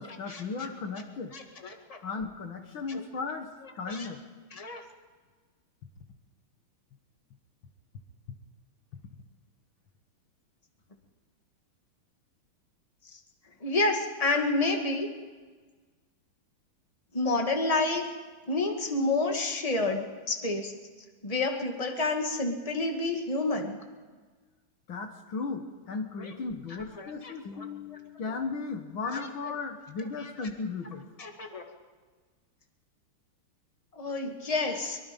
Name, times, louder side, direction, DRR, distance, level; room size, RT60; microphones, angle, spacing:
voice 1, 0.0-1.3 2.0-4.2 24.9-31.0, left 4 dB, 65° left, 6 dB, 2.2 m, -36 dB
voice 2, 1.3-2.0 2.9-3.0 3.9-4.1 4.6-4.8 13.6-15.1 17.1-18.0 18.5-20.7 21.2-23.8 27.0-27.3 29.1-29.2 31.2-31.6 34.0-35.0, left 2 dB, 15° left, 3 dB, 2.1 m, -29 dB
24.0 x 23.5 x 5.4 m, 1.4 s
omnidirectional pair, 2.4 m